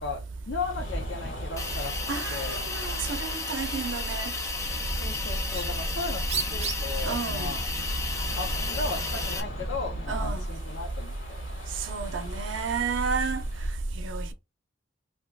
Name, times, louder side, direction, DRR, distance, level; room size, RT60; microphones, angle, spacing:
voice 1, 0.0-2.0 2.3-2.6 5.0-7.7 8.4-11.1, left 4 dB, 65° left, 0.5 m, -36 dB
sound 1, 0.6-13.7, left 1 dB, 85° left, 1.7 m, -43 dB
Hiss, 1.6-9.4, left 3 dB, 15° left, 0.5 m, -34 dB
voice 2, 2.1-4.3 7.0-7.5 10.1-10.4 11.8-13.4 14.0-14.3, right 4 dB, 80° right, 0.6 m, -31 dB
Bird, 4.5-10.5, right 1 dB, 35° right, 0.9 m, -33 dB
2.9 x 2.2 x 3.3 m
head